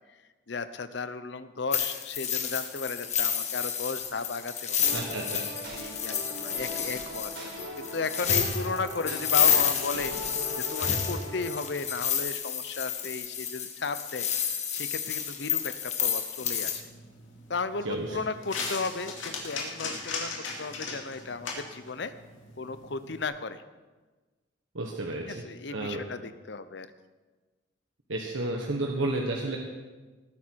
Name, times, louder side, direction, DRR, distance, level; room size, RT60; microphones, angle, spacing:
voice 1, 0.5-4.8 5.7-10.1 10.6-14.3 14.7-16.9 17.5-20.3 20.6-22.1 22.6-23.6 25.2-26.9, left 4 dB, 60° left, 12 dB, 0.7 m, -35 dB
sound 1, 1.7-16.8, left 8 dB, 35° left, 1.4 m, -30 dB
sound 2, 4.8-11.6, equal, 65° right, 4.2 m, -40 dB
voice 2, 4.9-5.4 17.8-18.2 24.7-25.4 25.7-26.0 28.1-29.6, right 2 dB, 85° right, 1 dB, 1.3 m, -31 dB
sound 3, 16.4-23.2, left 4 dB, 80° left, 2.7 m, -39 dB
18.5 x 10.0 x 4.7 m, 1.3 s
head